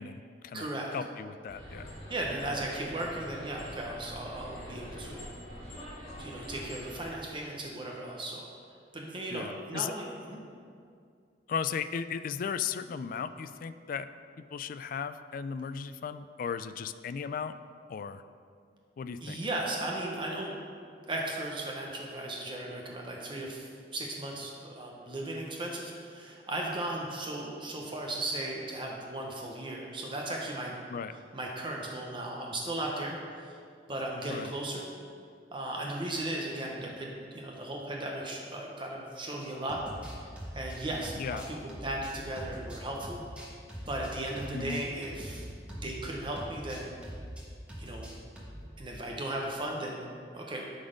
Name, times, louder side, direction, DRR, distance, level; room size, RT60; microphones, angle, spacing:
voice 1, 0.0-1.9 9.3-9.9 11.5-14.1 14.4-17.5 17.9-18.2 19.0-19.4 30.9-31.1 34.3-34.5 41.2-41.5 44.5-44.8, left 6 dB, 50° left, 12 dB, 0.3 m, -36 dB
voice 2, 0.5-0.9 2.1-5.3 6.2-8.4 8.9-10.4 19.2-20.6 21.1-30.8 31.3-33.6 33.9-34.9 35.5-39.8 40.2-43.2 43.8-45.4 45.8-47.0 47.8-48.1 48.8-50.6, right 1 dB, 30° right, -1 dB, 0.8 m, -36 dB
sound 1, 1.5-7.1, equal, 30° left, 2.2 m, -44 dB
sound 2, 39.4-46.1 46.4-47.4 47.7-48.7, equal, 5° right, 1.4 m, -43 dB
11.5 x 4.1 x 5.0 m, 2.2 s
head